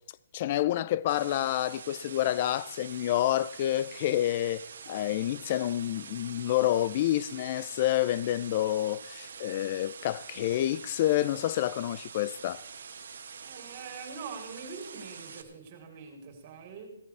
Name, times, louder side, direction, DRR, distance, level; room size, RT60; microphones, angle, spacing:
voice 1, 0.3-12.6, left 13 dB, 35° left, 0.4 m, -28 dB
sound 1, 1.1-15.4, right 6 dB, 65° right, 1.5 m, -45 dB
voice 2, 13.4-17.0, right 5 dB, 35° right, 3.7 m, -44 dB
17.0 x 13.5 x 3.4 m
hypercardioid pair, 160°, 0 cm